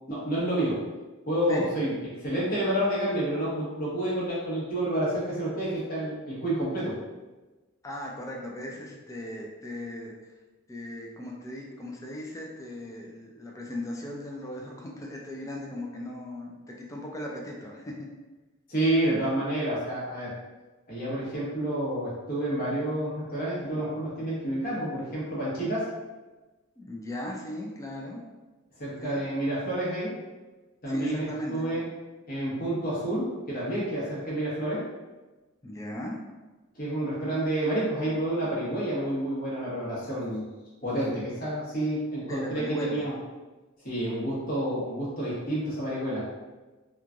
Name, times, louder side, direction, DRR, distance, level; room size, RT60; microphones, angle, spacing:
voice 1, 0.1-0.8 1.3-1.9 2.2-6.9 18.7-20.3 20.9-25.9 28.8-30.2 30.8-31.8 32.3-34.8 36.7-40.4 40.8-43.1 43.8-46.3, right 1 dB, 45° left, -7 dB, 1.1 m, -29 dB
voice 2, 7.8-10.1 10.7-17.9 26.8-28.2 29.0-29.2 30.9-31.7 35.6-36.2 42.3-43.1, left 1 dB, 15° left, -1 dB, 0.4 m, -38 dB
3.0 x 2.3 x 2.5 m, 1.2 s
head